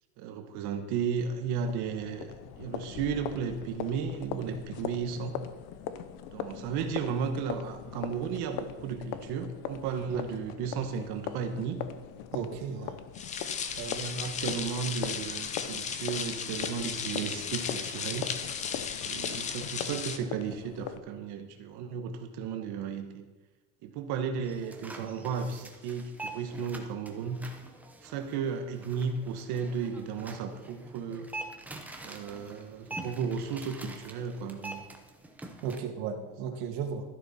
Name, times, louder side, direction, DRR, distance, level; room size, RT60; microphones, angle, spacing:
voice 1, 0.2-5.3 6.3-11.8 13.8-18.3 19.0-23.3 23.8-27.4 28.0-31.3 32.0-34.8 36.5-36.6, right 6 dB, 55° right, 6 dB, 1.2 m, -34 dB
sound 1, 1.4-21.0, left 9 dB, 55° left, 0.8 m, -41 dB
voice 2, 12.3-13.0 13.8-14.0 35.6-37.0, right 7 dB, 80° right, 5 dB, 2.1 m, -35 dB
sound 2, 13.1-20.2, left 6 dB, 20° left, 0.3 m, -35 dB
sound 3, 24.4-35.8, right 2 dB, 5° right, 0.7 m, -45 dB
13.0 x 11.0 x 4.2 m, 1.2 s
cardioid pair, 170°, 46 cm